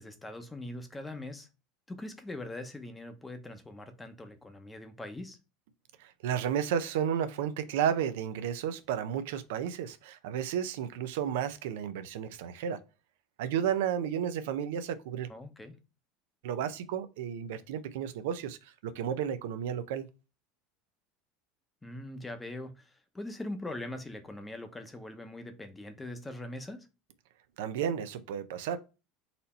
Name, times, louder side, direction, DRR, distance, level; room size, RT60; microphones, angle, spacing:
voice 1, 0.0-1.5 1.9-5.4 15.3-15.7 21.8-26.9, left 1 dB, 10° left, 0.8 m, -42 dB
voice 2, 6.0-12.8 13.4-15.3 16.4-18.6 18.8-20.1 27.6-28.8, right 9 dB, 85° right, 0.5 m, -32 dB
4.1 x 2.7 x 4.2 m
supercardioid pair, 125°, 0 cm